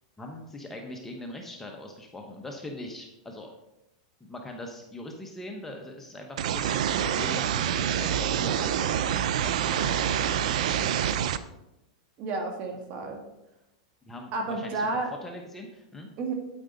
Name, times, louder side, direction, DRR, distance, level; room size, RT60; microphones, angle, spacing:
voice 1, 0.2-3.5 4.2-10.2 10.7-11.2 14.0-14.9 15.2-16.1, left 1 dB, 10° left, 2 dB, 1.0 m, -41 dB
sound 1, 6.4-11.4, right 9 dB, 75° right, 0.5 m, -26 dB
voice 2, 12.2-13.2 14.3-15.1 16.2-16.3, right 3 dB, 40° right, 3 dB, 1.8 m, -31 dB
8.9 x 8.7 x 4.0 m, 0.90 s
supercardioid pair, 145°, 4 cm